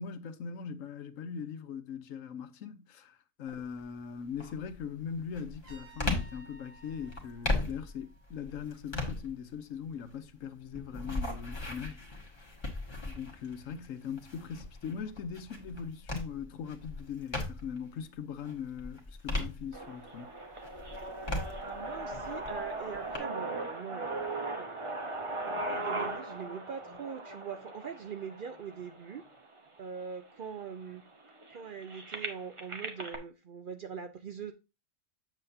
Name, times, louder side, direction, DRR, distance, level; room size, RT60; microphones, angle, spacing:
voice 1, 0.0-12.0 13.0-20.4, left 7 dB, 80° left, 1.1 m, -40 dB
sound 1, 3.5-3.9 4.4-17.9 18.3-20.2 20.6-23.2, left 2 dB, 20° left, 1.4 m, -38 dB
Trumpet, 5.6-8.6, right 2 dB, 70° right, 2.0 m, -57 dB
sound 2, 19.7-29.7 30.3-30.4 30.7-33.2, right 2 dB, 25° right, 0.9 m, -39 dB
voice 2, 21.5-24.7 25.4-29.2 29.8-31.0 31.5-34.5, right 6 dB, 55° right, 0.6 m, -42 dB
7.8 x 7.1 x 2.7 m
omnidirectional pair, 1.4 m